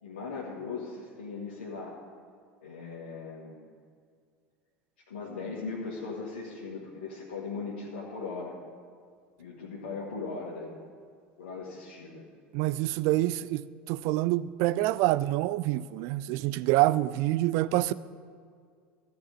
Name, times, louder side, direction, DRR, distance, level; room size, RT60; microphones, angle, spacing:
voice 1, 0.0-2.0 2.6-3.6 5.1-8.5 9.4-10.8 11.4-12.2, left 4 dB, 80° left, 1.5 m, -38 dB
voice 2, 12.5-17.9, right 16 dB, 55° right, 0.4 m, -26 dB
14.0 x 4.8 x 8.6 m
hypercardioid pair, 75°, 6 cm